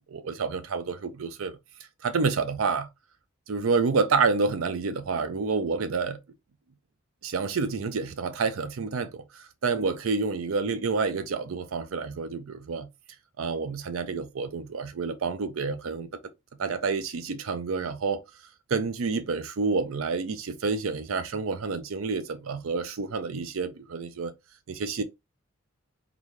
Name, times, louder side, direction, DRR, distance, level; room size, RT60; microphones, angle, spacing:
voice 1, 0.1-1.6 2.0-2.9 3.5-6.2 7.2-12.9 13.4-16.1 16.6-18.2 18.7-24.3 24.7-25.0, right 4 dB, 80° right, 0.5 m, -28 dB
3.9 x 2.3 x 3.1 m
head